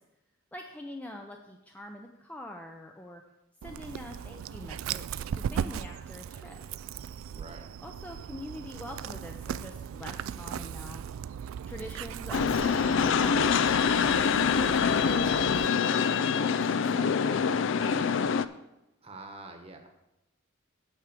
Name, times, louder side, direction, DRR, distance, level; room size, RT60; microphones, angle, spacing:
voice 1, 0.5-3.2 3.6-6.6 7.8-11.0 11.7-18.0, left 1 dB, 10° left, 2 dB, 0.5 m, -44 dB
Dog, 3.6-15.7, right 8 dB, 75° right, 0.3 m, -38 dB
voice 2, 7.3-7.7 19.0-19.9, right 2 dB, 30° right, 4 dB, 1.1 m, -46 dB
sound 1, 12.3-18.5, left 6 dB, 65° left, 0.4 m, -25 dB
8.8 x 4.8 x 7.5 m, 0.92 s
head